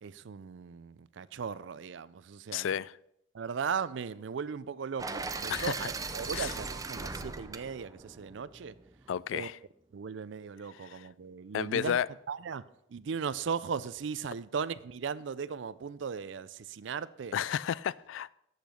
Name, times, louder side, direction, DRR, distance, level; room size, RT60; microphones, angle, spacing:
voice 1, 0.0-2.8 3.3-8.7 9.3-9.5 9.9-12.0 12.3-12.6 12.9-17.3, right 6 dB, 70° right, 0.4 m, -37 dB
voice 2, 2.5-2.9 5.5-5.7 6.3-6.5 9.1-9.6 10.8-11.1 11.5-12.1 17.3-18.3, left 9 dB, 85° left, 0.3 m, -32 dB
sound 1, 5.0-9.0, right 4 dB, 20° right, 0.5 m, -39 dB
8.1 x 6.7 x 6.3 m
head